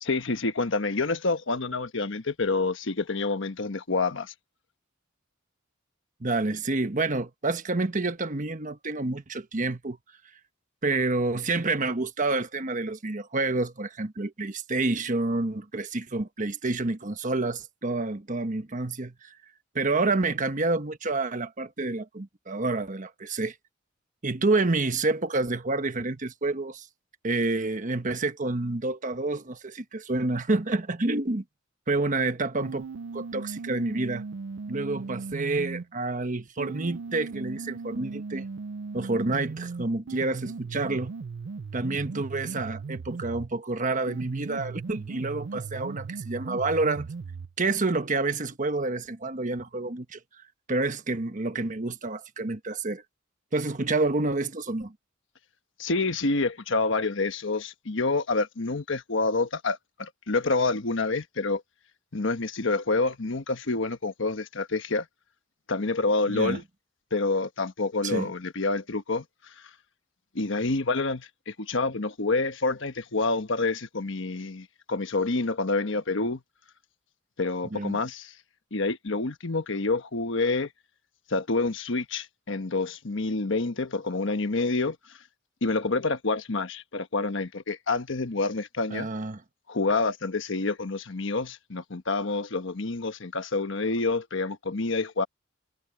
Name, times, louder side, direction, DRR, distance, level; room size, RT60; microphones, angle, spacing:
voice 1, 0.0-4.3 55.8-61.6 62.1-65.1 65.7-66.6 67.1-69.7 70.3-76.4 77.4-78.3 78.7-80.7 81.3-85.0 85.6-89.1 89.7-95.3, left 3 dB, 65° left, 1.2 m, -28 dB
voice 2, 6.2-10.0 10.8-19.4 19.7-23.5 24.2-26.9 27.2-31.4 31.9-32.9 33.1-34.2 34.7-38.5 38.9-41.1 41.7-47.1 47.6-50.2 50.7-53.0 53.5-54.9 66.3-66.6 68.0-68.3 77.7-78.0 88.9-89.4, right 3 dB, 40° right, 1.2 m, -28 dB
sound 1, 32.6-35.9 36.6-43.5 44.1-47.5, right 4 dB, 65° right, 0.5 m, -37 dB
head